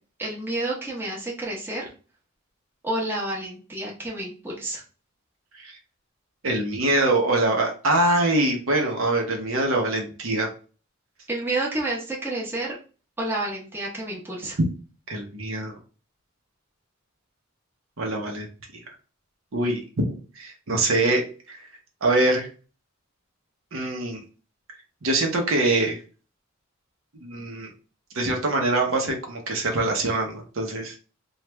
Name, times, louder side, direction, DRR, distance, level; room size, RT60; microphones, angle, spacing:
voice 1, 0.2-1.9 2.8-4.8 11.3-12.8 13.2-14.6, right 2 dB, 10° right, -4 dB, 0.9 m, -29 dB
voice 2, 6.4-10.5 15.1-15.8 18.0-18.5 18.7-18.8 19.5-19.8 20.4-21.2 21.5-21.6 22.0-22.5 23.7-24.2 25.0-26.0 27.2-27.7 28.1-30.9, right 2 dB, 75° right, 2 dB, 0.9 m, -24 dB
3.2 x 2.4 x 3.2 m, 0.36 s
head